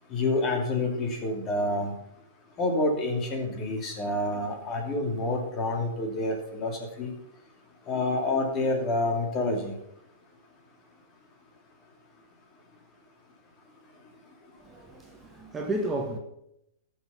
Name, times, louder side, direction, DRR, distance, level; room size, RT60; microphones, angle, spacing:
voice 1, 0.1-1.9 2.6-7.1 7.9-9.7, left 2 dB, 25° left, 2.8 m, -28 dB
voice 2, 14.6-16.2, right 1 dB, 15° right, 1.5 m, -32 dB
14.0 x 6.7 x 5.7 m
hypercardioid pair, 140°, 0 cm